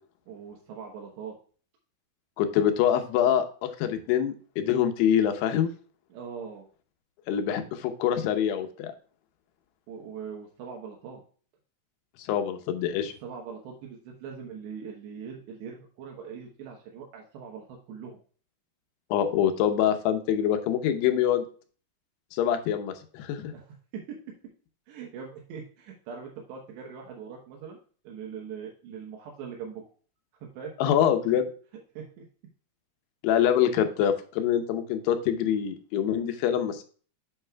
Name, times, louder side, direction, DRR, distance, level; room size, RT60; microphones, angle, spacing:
voice 1, 0.3-1.3 6.1-6.6 9.9-11.2 13.2-18.2 23.5-23.7 24.1-24.2 24.9-27.8 28.0-29.8 30.4-30.7 31.9-32.3, right 6 dB, 80° right, -1 dB, 3.3 m, -41 dB
voice 2, 2.4-5.7 7.3-8.9 12.3-13.1 19.1-21.4 22.3-23.5 30.8-31.5 33.2-36.8, left 9 dB, 80° left, 7 dB, 2.9 m, -25 dB
8.9 x 7.4 x 2.3 m, 0.41 s
omnidirectional pair, 4.9 m